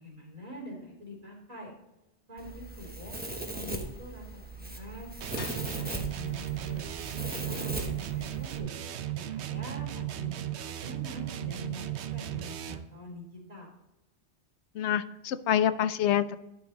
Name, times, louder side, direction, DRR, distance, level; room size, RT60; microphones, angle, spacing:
voice 1, 0.0-1.7 2.3-3.1 3.4-6.9 7.5-8.7 9.3-10.4 10.8-13.7, left 1 dB, 35° right, -1 dB, 2.9 m, -45 dB
Domestic sounds home sounds, 2.4-8.6, right 1 dB, 10° right, 1.1 m, -39 dB
sound 1, 5.2-13.0, right 12 dB, 80° right, 0.9 m, -36 dB
sound 2, 5.4-11.0, left 4 dB, 50° left, 1.2 m, -53 dB
voice 2, 14.7-16.4, left 10 dB, 90° left, 13 dB, 0.9 m, -26 dB
12.0 x 5.6 x 3.9 m, 0.94 s
omnidirectional pair, 1.1 m